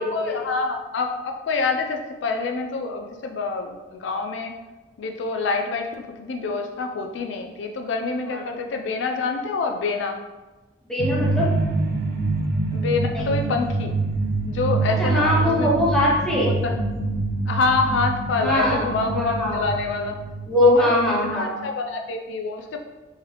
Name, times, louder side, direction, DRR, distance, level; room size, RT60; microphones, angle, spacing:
voice 1, 0.0-4.5 5.0-10.2 12.7-13.9 14.5-15.7 16.4-16.7 17.5-20.1 20.6-20.9 21.3-22.8, left 4 dB, 70° left, 4 dB, 0.4 m, -26 dB
voice 2, 10.9-11.5 13.1-13.4 15.0-16.5 18.4-19.6 20.5-21.6, left 1 dB, 5° left, -6 dB, 0.9 m, -21 dB
sound 1, 11.0-21.2, right 3 dB, 55° right, 0.5 m, -26 dB
4.6 x 2.9 x 3.3 m, 1.2 s
head